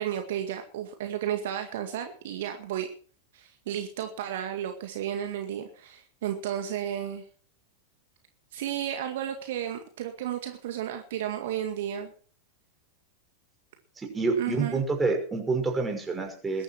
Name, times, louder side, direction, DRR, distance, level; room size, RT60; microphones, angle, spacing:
voice 1, 0.0-2.9 3.3-7.3 8.5-12.1 14.4-14.8 16.5-16.6, right 10 dB, 55° right, 6 dB, 2.0 m, -33 dB
voice 2, 14.0-16.6, right 4 dB, 15° right, 3 dB, 5.7 m, -28 dB
21.0 x 11.5 x 4.6 m, 0.43 s
figure-of-eight pair, 90°, 0 cm